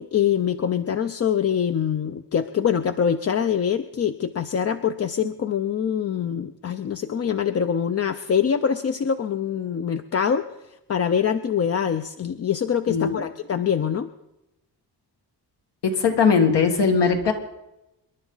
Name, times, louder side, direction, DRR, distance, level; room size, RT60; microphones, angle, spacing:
voice 1, 0.0-10.5 10.9-14.1, left 8 dB, 35° left, 9 dB, 0.5 m, -24 dB
voice 2, 12.9-13.2 15.8-17.3, left 5 dB, 80° left, 4 dB, 2.1 m, -20 dB
27.0 x 11.0 x 3.9 m, 0.92 s
wide cardioid pair, 150°, 41 cm